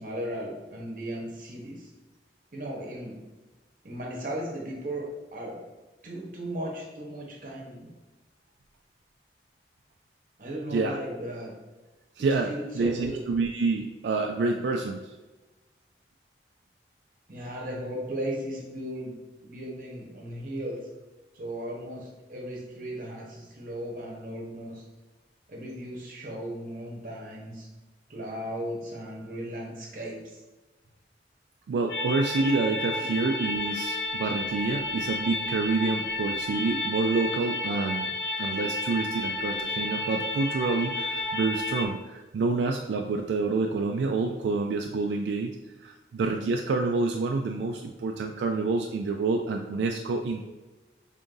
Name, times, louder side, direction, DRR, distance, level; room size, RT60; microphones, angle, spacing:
voice 1, 0.0-1.9 2.5-3.2 3.8-5.6 6.0-7.9 10.4-11.5 12.4-13.2 17.3-19.1 19.4-20.8 21.3-24.8 25.5-27.7 28.1-30.4, right 1 dB, 50° right, -2 dB, 0.9 m, -36 dB
voice 2, 12.2-15.0 31.7-38.1 38.4-45.6 45.8-50.5, right 3 dB, 85° right, 3 dB, 0.3 m, -28 dB
sound 1, 31.9-41.9, left 2 dB, 75° left, 0.6 m, -31 dB
3.5 x 2.6 x 3.7 m, 1.2 s
head